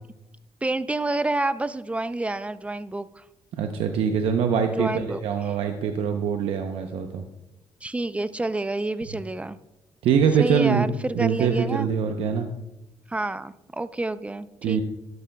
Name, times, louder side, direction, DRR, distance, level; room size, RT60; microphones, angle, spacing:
voice 1, 0.6-3.2 4.8-5.2 7.8-9.6 10.4-11.9 13.1-14.8, right 2 dB, 15° right, 14 dB, 0.4 m, -28 dB
voice 2, 3.5-7.2 10.0-10.9 11.1-12.5 14.6-14.8, right 7 dB, 85° right, 5 dB, 0.7 m, -23 dB
12.5 x 11.0 x 2.3 m, 0.94 s
cardioid pair, 95°, 9 cm